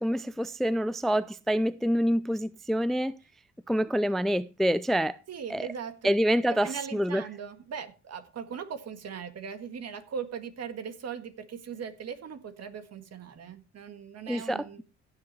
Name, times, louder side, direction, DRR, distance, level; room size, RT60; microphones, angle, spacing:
voice 1, 0.0-3.1 3.7-5.2 5.5-5.7 6.0-7.2 14.3-14.8, equal, ahead, 0.4 m, -27 dB
voice 2, 5.3-6.1 6.5-14.8, right 7 dB, 55° right, 1.7 m, -39 dB
16.0 x 7.1 x 3.2 m
cardioid pair, 90°, 30 cm